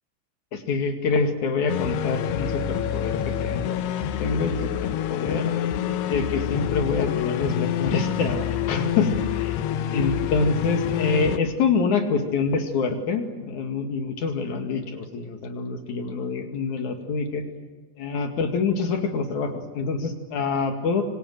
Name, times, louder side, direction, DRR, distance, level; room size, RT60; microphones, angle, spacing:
voice 1, 0.5-3.8 4.2-5.5 6.1-9.6 9.9-17.4 18.0-21.1, left 4 dB, 50° left, 5 dB, 3.0 m, -26 dB
sound 1, 1.7-11.4, left 10 dB, 75° left, 2.9 m, -27 dB
26.5 x 24.5 x 7.8 m, 1.3 s
omnidirectional pair, 5.2 m